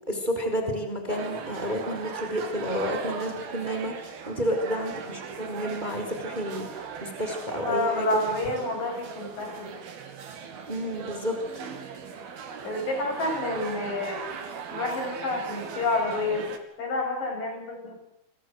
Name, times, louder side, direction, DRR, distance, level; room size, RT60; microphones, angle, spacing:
voice 1, 0.1-8.1 10.7-11.3, equal, 10° right, 5 dB, 4.7 m, -30 dB
cafe ambience barcelona people, 1.1-16.6, right 6 dB, 80° right, 4.6 m, -38 dB
voice 2, 7.6-9.8 12.6-14.3 14.7-16.5 16.8-18.0, left 2 dB, 65° left, 3 dB, 9.1 m, -29 dB
30.0 x 24.0 x 8.2 m, 0.75 s
omnidirectional pair, 4.3 m